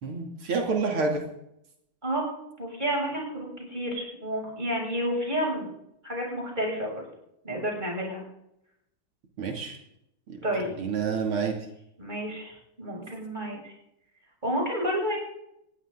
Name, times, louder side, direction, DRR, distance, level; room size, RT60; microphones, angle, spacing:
voice 1, 0.0-1.2 9.4-9.8 10.3-10.4 10.8-11.6, right 4 dB, 90° right, 1 dB, 3.6 m, -28 dB
voice 2, 2.6-5.7 6.0-7.0 7.4-8.2 10.4-10.7 12.0-13.7 14.4-15.2, equal, 20° right, -2 dB, 7.5 m, -30 dB
20.5 x 16.0 x 4.0 m, 0.78 s
omnidirectional pair, 2.3 m